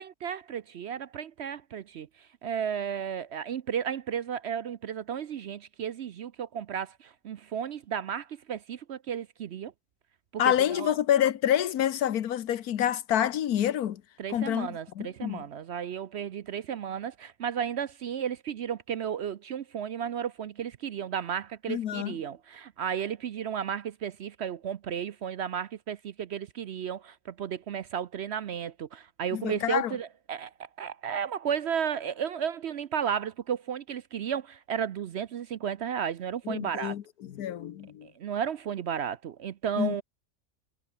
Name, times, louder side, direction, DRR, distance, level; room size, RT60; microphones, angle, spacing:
voice 1, 0.0-9.7 10.3-10.9 14.2-36.9 38.0-40.0, right 8 dB, 60° right, 0.8 m, -33 dB
voice 2, 10.4-14.0 14.3-15.4 21.7-22.2 29.3-29.9 36.5-37.0 37.3-38.1 39.8-39.9, left 10 dB, 90° left, 1.4 m, -27 dB
omnidirectional pair, 1.5 m